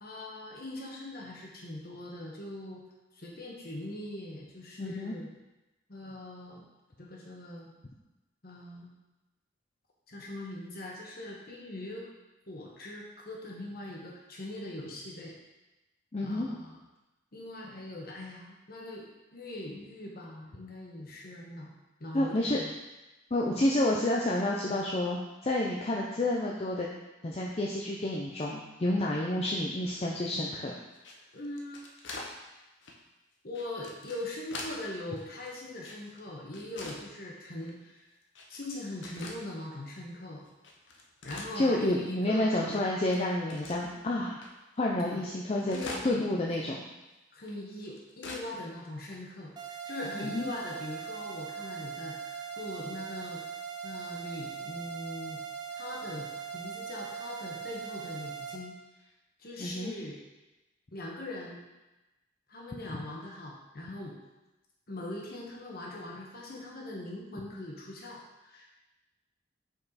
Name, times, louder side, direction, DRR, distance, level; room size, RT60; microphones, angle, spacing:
voice 1, 0.0-2.8 3.1-5.3 5.9-6.7 7.0-7.7 8.4-8.9 10.1-12.1 12.5-15.3 16.2-16.8 17.3-19.1 19.3-21.7 22.0-22.7 31.3-31.8 33.4-38.1 38.5-40.5 41.2-42.8 45.0-45.2 45.7-46.2 46.5-46.6 47.3-53.4 53.8-55.4 55.7-58.7 59.4-60.2 60.9-61.6 62.5-64.2 64.9-68.6, left 1 dB, 50° left, -3 dB, 1.2 m, -41 dB
voice 2, 4.8-5.1 16.1-16.5 22.1-22.6 23.3-26.9 27.2-30.7 41.6-44.4 44.8-46.8 50.2-50.5 59.6-59.9, left 1 dB, 30° left, -3 dB, 0.5 m, -29 dB
sound 1, 30.9-32.3 32.8-33.0 33.5-34.8 35.2-36.2 36.5-37.0 37.6-37.7 38.3-38.7 39.0-39.4 39.9-40.0 40.5-42.1 42.3-42.4 42.7-44.0 44.4-44.5 44.8-44.9 45.1-46.3 46.7-46.8 47.5-48.5 48.8-48.9 49.1-49.2 49.9-50.1, left 2 dB, 70° left, 0.8 m, -43 dB
sound 2, 49.6-58.6, right 7 dB, 20° right, 0.5 m, -40 dB
5.4 x 4.7 x 4.1 m, 1.0 s
head